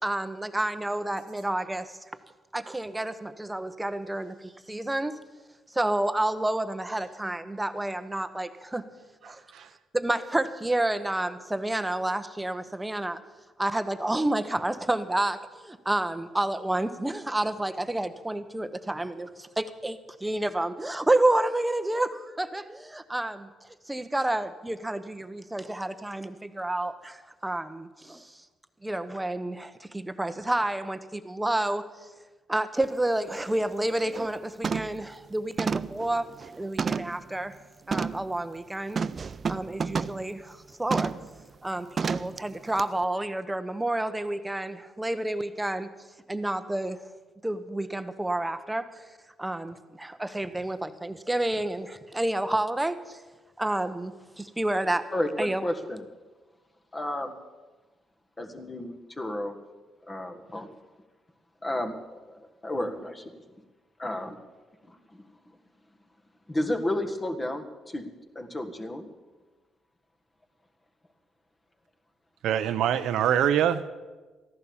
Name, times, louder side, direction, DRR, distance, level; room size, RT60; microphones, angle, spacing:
voice 1, 0.0-2.0 2.5-5.2 5.7-8.8 9.2-9.4 9.9-13.2 13.6-28.4 28.8-31.8 32.5-36.3 36.6-37.5 37.9-39.0 39.5-41.1 41.6-45.9 46.3-47.0 47.4-49.0 49.4-53.2 53.6-55.1 55.4-55.6, right 1 dB, 10° right, 11 dB, 0.9 m, -29 dB
voice 2, 9.2-9.7 72.4-73.9, right 10 dB, 80° right, 11 dB, 0.7 m, -25 dB
sound 1, 32.8-32.9 33.4-33.6 34.0-34.3 34.6-35.0 35.6-37.2 37.9-38.3 39.0-40.2 40.9-41.3 42.0-42.4 42.8-42.9, right 5 dB, 40° right, 0.4 m, -30 dB
voice 3, 55.1-56.0 56.9-57.3 58.4-59.5 60.1-60.7 61.6-63.3 64.0-64.4 64.8-65.2 66.5-68.0 68.3-69.1, left 1 dB, 20° left, 5 dB, 1.6 m, -32 dB
14.0 x 11.0 x 7.1 m, 1.3 s
cardioid pair, 90°, 0 cm